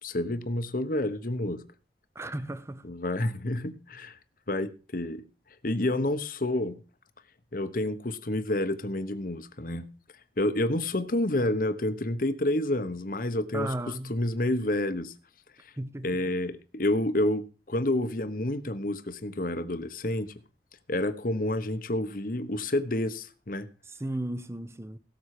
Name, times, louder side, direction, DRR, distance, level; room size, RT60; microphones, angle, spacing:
voice 1, 0.0-1.6 2.8-4.2 4.5-5.2 5.6-6.8 7.5-9.9 10.4-13.7 14.1-15.1 15.6-15.7 16.0-20.4 20.9-23.7, left 1 dB, 50° left, 1.1 m, -29 dB
voice 2, 2.1-2.9 13.5-14.1 15.8-16.3 23.9-25.0, right 1 dB, 15° right, 0.9 m, -35 dB
17.0 x 7.2 x 4.9 m
head